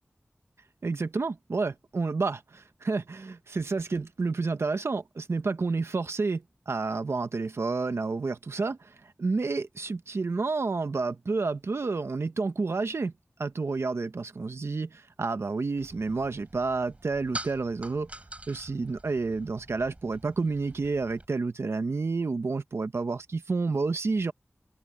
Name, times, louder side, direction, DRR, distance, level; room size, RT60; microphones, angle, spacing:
voice 1, 0.8-13.1 13.4-18.1 18.5-24.3, right 3 dB, 80° right, 1.0 m, -30 dB
sound 1, 15.8-21.3, right 1 dB, 30° right, 3.6 m, -45 dB
wide cardioid pair, 70°, 4 cm